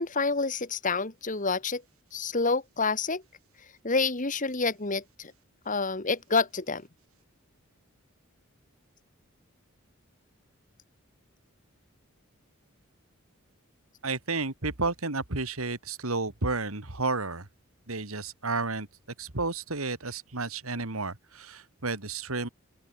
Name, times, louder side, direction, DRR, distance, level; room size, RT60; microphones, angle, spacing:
voice 1, 0.0-1.8 2.1-3.2 3.8-5.3 5.7-6.8, left 4 dB, 35° left, 1.9 m, -28 dB
voice 2, 14.0-17.5 17.9-18.9 19.2-22.5, right 3 dB, 85° right, 2.9 m, -31 dB
open air
head